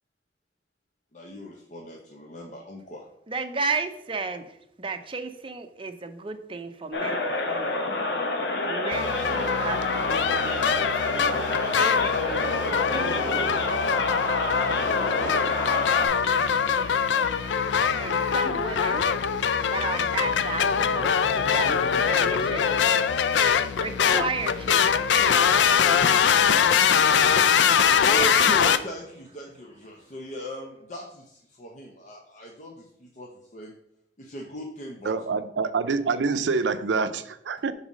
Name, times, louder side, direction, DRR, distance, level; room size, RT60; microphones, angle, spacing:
voice 1, 1.1-3.1 28.0-33.7 34.2-35.1, right 1 dB, 45° left, -1 dB, 0.8 m, -38 dB
voice 2, 3.3-4.4 4.8-7.7 8.7-10.8 11.7-12.5 12.9-14.3 15.4-22.7 23.8-28.1, right 4 dB, 30° right, 7 dB, 0.6 m, -35 dB
sound 1, 6.9-16.1, left 2 dB, 70° left, 1.0 m, -28 dB
sound 2, 8.9-28.8, left 7 dB, 85° left, 0.4 m, -23 dB
voice 3, 35.0-37.7, right 4 dB, 85° right, 11 dB, 0.5 m, -26 dB
5.6 x 4.0 x 6.1 m, 0.75 s
head